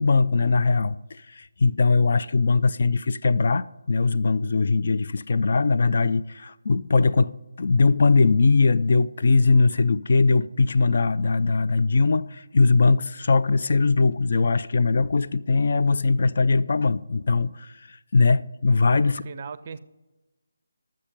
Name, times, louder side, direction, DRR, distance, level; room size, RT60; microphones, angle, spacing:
voice 1, 0.0-19.2, left 4 dB, 50° left, 0.3 m, -21 dB
voice 2, 19.0-19.8, right 6 dB, 35° right, 0.5 m, -38 dB
11.5 x 7.6 x 5.1 m
figure-of-eight pair, 155°, 0 cm